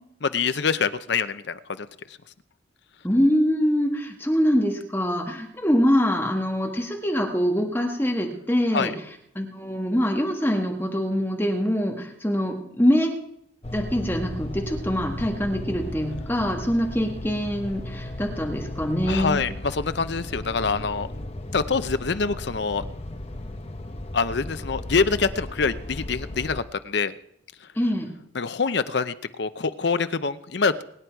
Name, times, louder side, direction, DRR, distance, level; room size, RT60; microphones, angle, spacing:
voice 1, 0.2-1.9 8.7-8.9 19.1-21.1 21.5-22.8 24.1-27.1 28.3-30.8, left 5 dB, 55° left, 13 dB, 0.6 m, -25 dB
voice 2, 3.0-8.9 9.3-13.1 13.7-19.4 27.7-28.1, equal, 10° left, 2 dB, 1.5 m, -24 dB
sound 1, 13.6-26.6, left 1 dB, 30° left, 0.8 m, -35 dB
23.5 x 9.7 x 4.6 m, 0.73 s
head